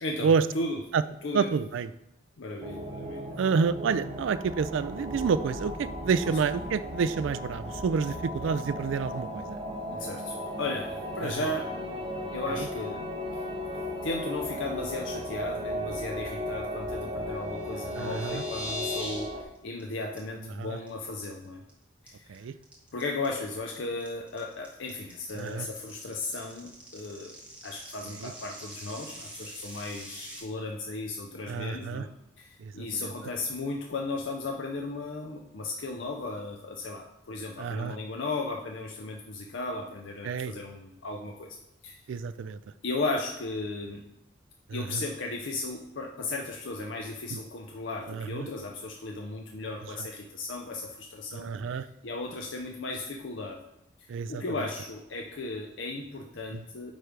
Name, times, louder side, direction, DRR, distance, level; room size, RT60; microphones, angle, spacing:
voice 1, 0.0-0.8 1.2-1.5 2.4-3.3 9.9-10.9 11.1-11.7 12.3-13.0 13.3-13.4 14.0-21.6 22.0-22.5 22.9-27.3 27.6-32.1 32.4-41.6 41.8-42.0 42.8-44.0 44.7-53.6 54.0-56.9, left 2 dB, 65° left, 1 dB, 0.6 m, -35 dB
voice 2, 1.3-1.9 3.4-9.6 11.2-11.4 12.6-12.7 18.0-18.4 20.6-20.8 22.3-22.5 25.3-25.7 28.2-28.3 31.5-32.1 32.6-33.1 37.6-38.0 40.2-40.5 42.1-42.6 44.7-45.0 47.3-47.4 48.1-48.5 50.0-50.1 51.3-51.9 54.1-54.4 56.5-56.6, right 5 dB, 70° right, 14 dB, 0.3 m, -29 dB
sound 1, 2.6-19.4, equal, 25° right, 0.7 m, -36 dB
sound 2, 17.6-19.2 19.5-19.8 20.2-20.3 20.6-20.9 21.2-21.7 22.1-30.4, left 1 dB, 5° right, 1.4 m, -42 dB
9.0 x 3.3 x 5.0 m, 0.88 s
head